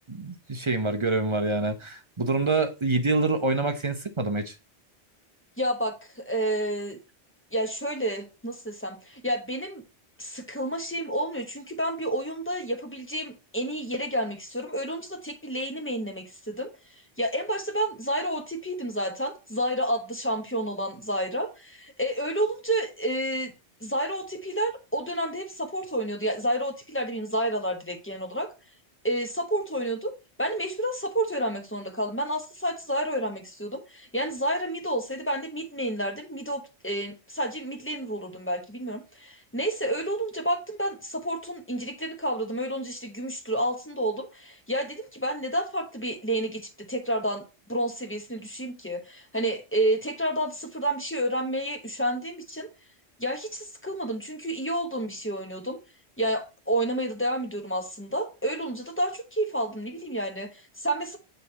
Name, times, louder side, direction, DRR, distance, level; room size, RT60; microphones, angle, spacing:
voice 1, 0.1-4.6, right 3 dB, 30° right, 0.6 m, -26 dB
voice 2, 5.6-7.0 7.5-9.8 10.2-16.7 17.2-23.5 23.8-28.5 29.0-30.1 30.4-52.7 53.2-55.8 56.2-61.2, right 1 dB, 10° left, 1.0 m, -30 dB
7.8 x 3.2 x 4.0 m
omnidirectional pair, 1.1 m